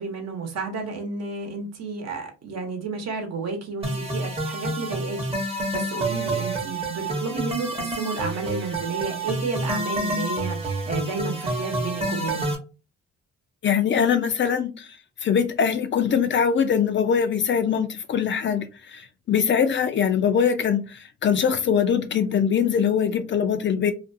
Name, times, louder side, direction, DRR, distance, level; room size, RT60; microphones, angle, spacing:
voice 1, 0.0-12.5, right 4 dB, 60° right, 0.9 m, -31 dB
sound 1, 3.8-12.5, right 1 dB, 20° right, 0.8 m, -28 dB
voice 2, 13.6-14.9 15.2-23.9, left 7 dB, 40° left, 0.4 m, -22 dB
2.5 x 2.2 x 2.5 m
cardioid pair, 90°, 30 cm